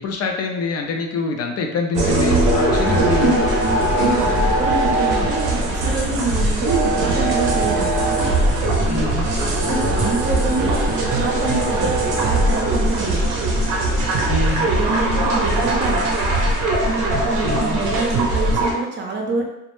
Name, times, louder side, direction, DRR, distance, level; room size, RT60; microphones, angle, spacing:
voice 1, 0.0-3.4 8.9-9.3 14.3-14.7 17.4-17.8, left 4 dB, 55° left, 3 dB, 0.5 m, -25 dB
sound 1, 1.9-18.7, right 1 dB, 85° right, 0.6 m, -20 dB
voice 2, 4.0-7.9 9.4-11.9 12.2-13.2 14.6-16.0 17.0-19.4, right 3 dB, 40° right, 1 dB, 0.6 m, -26 dB
2.1 x 2.0 x 3.0 m, 0.91 s
cardioid pair, 90°, 30 cm